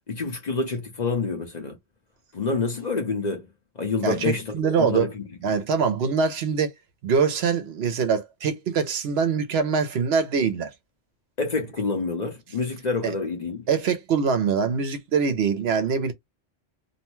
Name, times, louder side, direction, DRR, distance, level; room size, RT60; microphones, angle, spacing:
voice 1, 0.1-1.8 2.3-3.5 3.8-5.2 11.4-13.7, left 4 dB, 45° left, 0.8 m, -27 dB
voice 2, 4.0-5.1 5.4-6.7 7.0-10.7 13.0-13.1 13.7-16.1, right 6 dB, 70° right, 0.8 m, -23 dB
2.7 x 2.1 x 3.0 m
omnidirectional pair, 1.2 m